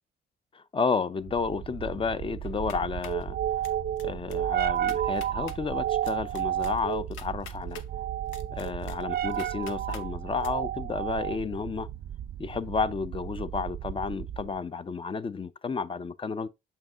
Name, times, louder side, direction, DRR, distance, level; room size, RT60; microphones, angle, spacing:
voice 1, 0.5-3.4 4.0-7.8 8.5-11.9 12.4-16.5, left 5 dB, 25° left, 0.5 m, -31 dB
sound 1, 1.3-14.6, right 11 dB, 50° right, 0.4 m, -32 dB
sound 2, 2.4-3.2 3.6-4.0 4.3-4.4 4.7-5.6 6.0-7.9 8.3-10.0 10.4-10.5, left 8 dB, 85° left, 0.8 m, -46 dB
6.9 x 5.8 x 2.5 m
cardioid pair, 90°, 20 cm